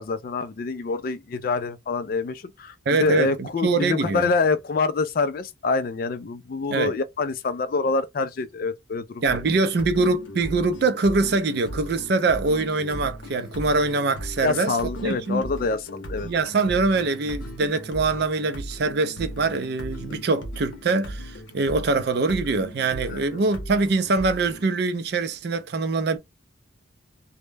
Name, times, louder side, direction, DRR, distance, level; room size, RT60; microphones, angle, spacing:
voice 1, 0.0-9.4 14.4-16.3 23.1-23.2, left 4 dB, 45° left, 0.3 m, -26 dB
voice 2, 2.9-4.3 6.7-6.9 9.2-14.8 15.0-15.4 16.2-26.2, right 3 dB, 55° right, 0.4 m, -23 dB
sound 1, 9.2-24.7, equal, 75° left, 0.7 m, -38 dB
2.1 x 2.0 x 3.2 m
head